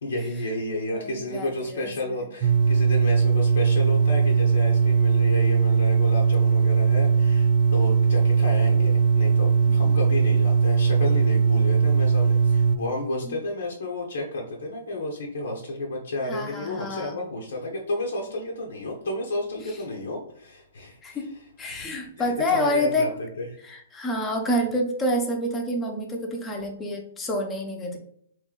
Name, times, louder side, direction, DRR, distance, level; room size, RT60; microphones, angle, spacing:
voice 1, 0.0-21.2 21.7-21.9 22.2-23.1 23.4-23.5, left 1 dB, 85° left, -1 dB, 0.8 m, -32 dB
voice 2, 0.9-1.9 9.7-9.9 13.2-13.4 16.2-17.2 19.6-19.8 21.0-21.3 21.6-23.2 23.6-28.0, left 1 dB, 15° left, 2 dB, 0.7 m, -28 dB
sound 1, 2.4-12.8, right 5 dB, 45° right, 0.3 m, -20 dB
3.0 x 2.6 x 3.7 m, 0.68 s
hypercardioid pair, 150°, 0 cm